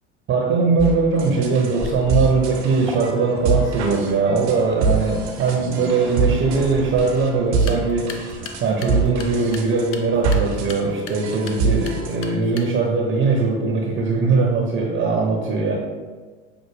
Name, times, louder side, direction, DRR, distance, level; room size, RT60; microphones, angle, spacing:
voice 1, 0.3-8.2 8.6-15.8, right 4 dB, 35° right, 0 dB, 0.7 m, -20 dB
sound 1, 0.8-12.3, right 4 dB, 75° right, 0.8 m, -25 dB
Waves surf, 1.8-7.0, left 2 dB, ahead, 0.3 m, -39 dB
sound 2, 7.5-13.0, left 5 dB, 45° left, 0.6 m, -40 dB
5.9 x 2.1 x 3.2 m, 1.4 s
hypercardioid pair, 75°, 34 cm